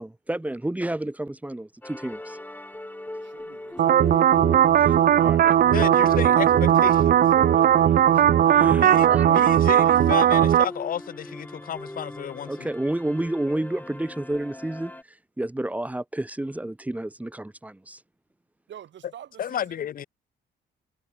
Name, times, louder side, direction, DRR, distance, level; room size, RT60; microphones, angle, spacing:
voice 1, 0.0-2.4 4.8-5.5 7.8-7.9 8.5-9.4 12.5-14.9 15.4-18.0, right 1 dB, 5° right, 0.8 m, -30 dB
sound 1, 1.8-15.0, left 1 dB, 10° left, 3.0 m, -38 dB
voice 2, 3.2-4.2 18.7-19.8, right 10 dB, 65° right, 5.5 m, -47 dB
sound 2, 3.8-10.6, right 10 dB, 50° right, 0.5 m, -18 dB
voice 3, 5.7-7.2 8.7-12.7 19.4-20.1, left 9 dB, 45° left, 0.6 m, -32 dB
cardioid pair, 90°, 20 cm